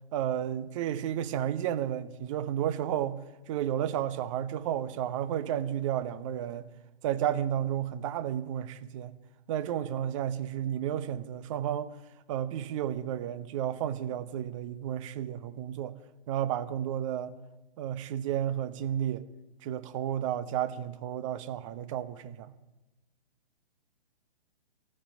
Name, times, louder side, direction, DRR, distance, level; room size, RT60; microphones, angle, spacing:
voice 1, 0.1-6.7 7.0-9.2 9.5-11.9 12.3-15.9 16.3-17.4 17.8-19.3 19.6-22.5, right 10 dB, 30° right, 0.9 m, -32 dB
14.5 x 14.0 x 7.1 m
figure-of-eight pair, 125°, 30 cm